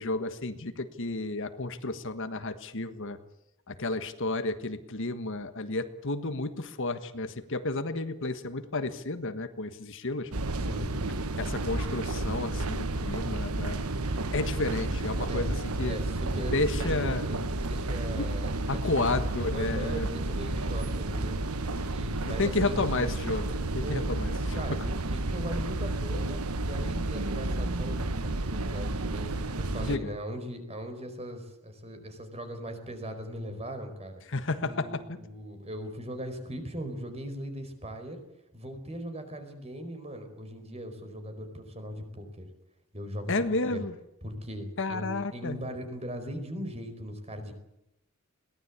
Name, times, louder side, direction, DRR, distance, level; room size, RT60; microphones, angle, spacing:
voice 1, 0.0-3.2 3.7-10.3 11.4-13.8 14.3-16.0 16.5-17.3 18.1-18.3 18.7-20.2 21.8-24.8 29.8-30.1 34.3-35.2 43.3-44.0 44.8-45.6, left 2 dB, 60° left, 9 dB, 1.5 m, -32 dB
sound 1, 10.3-30.0, right 2 dB, 85° right, 1.3 m, -31 dB
voice 2, 15.8-19.2 19.5-21.4 21.9-22.8 23.8-24.0 24.5-29.3 29.6-34.2 34.6-38.2 38.5-42.5 42.9-43.8 44.2-47.5, equal, 30° right, 7 dB, 4.6 m, -39 dB
22.5 x 18.5 x 8.3 m, 0.87 s
head